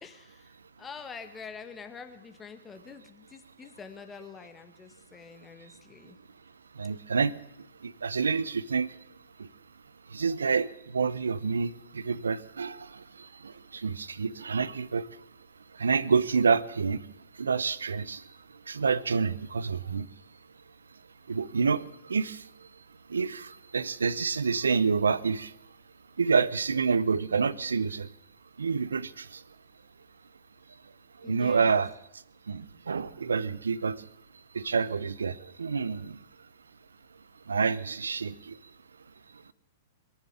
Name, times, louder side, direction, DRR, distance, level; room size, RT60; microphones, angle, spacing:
voice 1, 0.0-6.2 31.2-31.8, left 5 dB, 15° left, 7 dB, 1.6 m, -46 dB
voice 2, 6.8-7.3 7.8-8.9 9.4-9.5 10.1-15.1 15.8-17.0 17.4-18.2 18.7-20.1 21.3-22.4 23.1-25.5 26.2-28.1 28.6-29.4 31.2-31.9 32.5-34.0 34.5-36.2 37.5-38.6, right 5 dB, 80° right, 20 dB, 0.6 m, -28 dB
21.5 x 7.3 x 8.9 m, 0.79 s
figure-of-eight pair, 110°, 0 cm